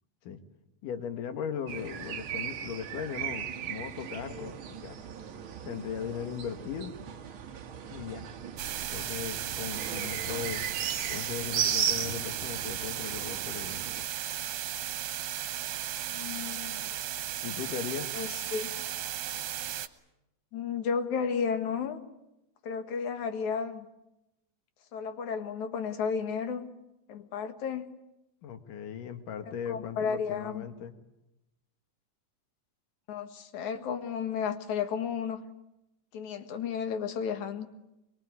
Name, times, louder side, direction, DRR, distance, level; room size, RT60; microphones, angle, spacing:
voice 1, 0.8-5.0 5.6-6.9 7.9-8.3 8.9-10.6 11.1-13.8 17.4-18.1 28.4-30.9, left 8 dB, 85° left, 8 dB, 3.3 m, -38 dB
sound 1, 1.7-14.0, right 8 dB, 55° right, 1.7 m, -36 dB
sound 2, 8.6-19.9, right 11 dB, 75° right, 2.4 m, -35 dB
voice 2, 16.1-17.0 18.1-18.7 20.5-22.0 22.6-23.9 24.9-26.7 27.1-27.9 29.7-30.7 33.1-35.4 36.1-37.7, left 6 dB, 70° left, 8 dB, 3.0 m, -33 dB
23.5 x 22.5 x 9.7 m, 0.91 s
omnidirectional pair, 3.6 m